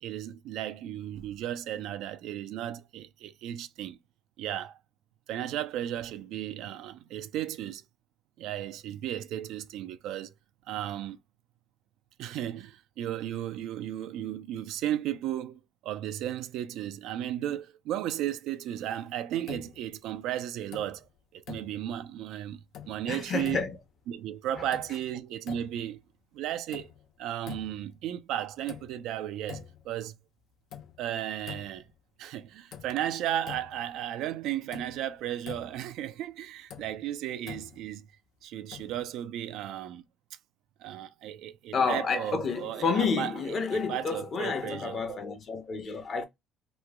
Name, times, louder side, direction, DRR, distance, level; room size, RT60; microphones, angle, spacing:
voice 1, 0.0-4.0 4.4-4.8 5.3-7.8 8.4-10.3 10.7-11.2 12.2-23.7 24.1-26.0 26.3-26.9 27.2-30.1 31.0-31.9 32.2-38.1 38.4-40.0 40.8-43.3 43.7-45.2, right 11 dB, 80° right, 0.4 m, -35 dB
sound 1, 19.5-20.1 20.5-21.2 21.5-22.1 22.5-23.1 23.4-24.1 24.5-25.2 25.5-26.0 26.5-27.1 27.4-28.0 28.4-29.1 29.4-30.1 30.4-32.0 32.4-32.5 32.7-34.0 34.2-34.4 34.7-36.0 36.4-38.0 38.7-39.1, left 9 dB, 70° left, 0.6 m, -46 dB
voice 2, 23.1-23.7 41.7-46.2, left 5 dB, 45° left, 0.9 m, -30 dB
3.1 x 2.2 x 3.6 m
cardioid pair, 100°, 0 cm